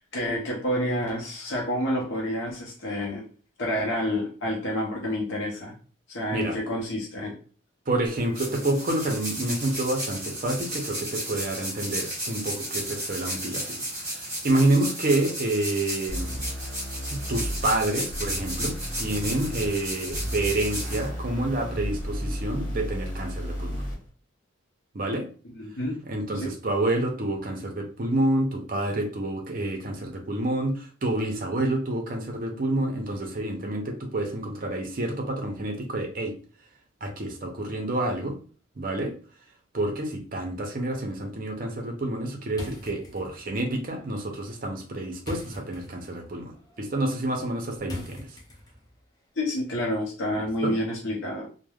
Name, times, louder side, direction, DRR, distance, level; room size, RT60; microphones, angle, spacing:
voice 1, 0.0-3.2 3.6-5.7 6.1-7.3 25.5-25.9 26.3-26.5 49.4-51.5, left 1 dB, 65° left, -2 dB, 0.6 m, -29 dB
voice 2, 7.9-16.4 17.1-23.8 24.9-25.3 26.1-36.3 37.0-38.4 38.8-39.1 39.7-48.4 50.4-50.7, right 1 dB, 45° right, 3 dB, 0.5 m, -28 dB
sound 1, 8.1-21.6, right 1 dB, 15° right, 1.2 m, -34 dB
sound 2, 16.1-24.1, equal, 40° left, 1.1 m, -33 dB
sound 3, 42.5-49.0, left 1 dB, 20° left, 0.4 m, -43 dB
3.2 x 2.0 x 2.3 m, 0.40 s
head